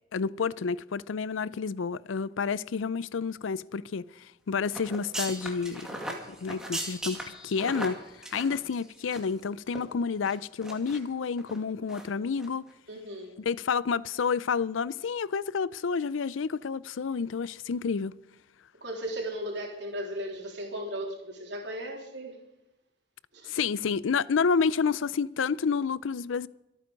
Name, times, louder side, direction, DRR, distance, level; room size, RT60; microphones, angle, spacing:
voice 1, 0.1-4.1 4.5-8.0 8.3-12.6 13.4-18.1 23.5-26.5, left 5 dB, 85° left, 0.5 m, -29 dB
sound 1, 4.7-9.4 9.7-9.8 10.2-11.0 11.4-11.6 11.9-12.1 12.4-12.5, right 1 dB, 5° right, 2.2 m, -38 dB
voice 2, 12.9-13.4 18.8-22.4 23.3-23.6, equal, 60° right, 3.6 m, -36 dB
26.5 x 9.2 x 5.2 m
head